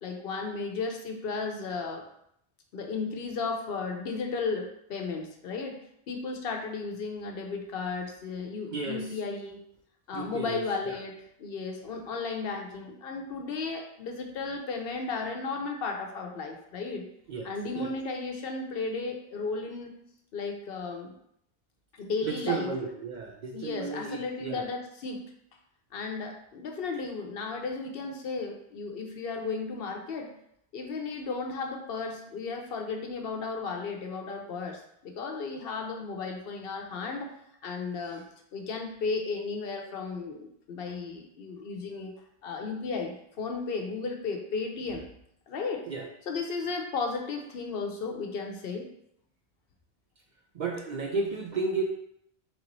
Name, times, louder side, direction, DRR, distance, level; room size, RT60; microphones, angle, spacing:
voice 1, 0.0-2.0 2.7-5.8 6.1-9.6 10.1-17.1 17.4-19.9 20.3-21.1 21.9-22.7 23.5-25.2 25.9-30.3 30.7-37.3 37.6-38.2 38.5-42.1 42.4-45.1 45.5-45.9 46.3-48.9, left 4 dB, 65° left, 2 dB, 0.8 m, -34 dB
voice 2, 8.7-9.1 10.1-11.0 17.3-17.5 17.7-17.9 22.2-24.7 45.9-46.0 50.5-51.8, right 4 dB, 55° right, 1 dB, 0.5 m, -33 dB
3.5 x 3.0 x 3.9 m, 0.73 s
omnidirectional pair, 1.1 m